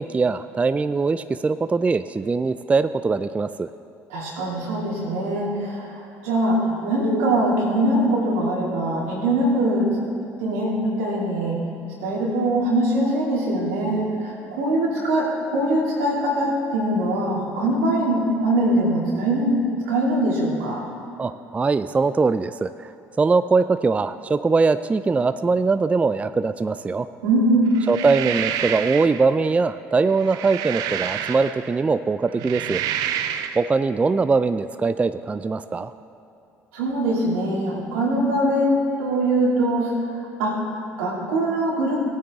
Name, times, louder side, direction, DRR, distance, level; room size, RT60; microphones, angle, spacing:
voice 1, 0.0-3.7 21.2-22.9 23.2-27.1 27.9-32.8 33.6-35.9, right 4 dB, 20° right, 12 dB, 0.3 m, -21 dB
voice 2, 4.1-9.9 10.4-11.6 12.0-19.6 19.9-20.8 27.2-27.8 36.7-39.9 40.4-42.0, right 1 dB, 85° right, -4 dB, 2.5 m, -22 dB
sound 1, 27.8-29.2 30.1-31.8 32.3-33.7, right 10 dB, 70° right, 0.5 m, -28 dB
16.0 x 8.9 x 3.6 m, 2.6 s
hypercardioid pair, 70°, 7 cm